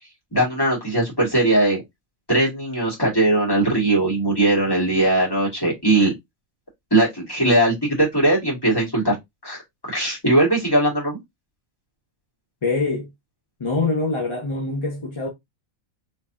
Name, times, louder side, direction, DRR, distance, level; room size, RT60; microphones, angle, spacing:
voice 1, 0.3-1.8 2.3-6.1 6.9-9.2 9.4-11.2, right 1 dB, 15° left, 1.8 m, -20 dB
voice 2, 12.6-13.1 13.6-15.3, left 3 dB, 35° left, 0.5 m, -24 dB
3.5 x 3.2 x 2.7 m
omnidirectional pair, 1.4 m